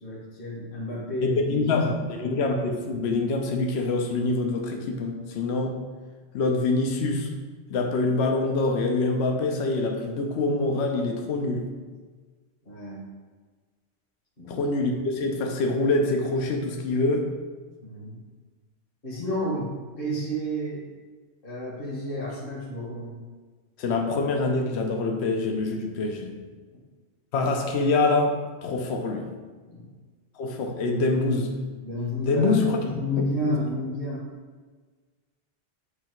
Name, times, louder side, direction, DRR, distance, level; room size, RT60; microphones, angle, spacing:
voice 1, 0.0-1.6 12.7-13.1 14.4-14.6 17.8-18.2 19.0-20.9 21.4-23.1 29.7-29.9 31.8-34.2, equal, 60° left, -6 dB, 1.4 m, -31 dB
voice 2, 1.2-5.8 6.3-7.4 7.7-11.7 14.5-17.3 23.8-26.4 27.3-29.4 30.4-31.6 32.2-32.8 33.2-33.8, left 3 dB, 75° left, 3 dB, 0.9 m, -25 dB
8.0 x 2.8 x 4.4 m, 1.4 s
omnidirectional pair, 1.1 m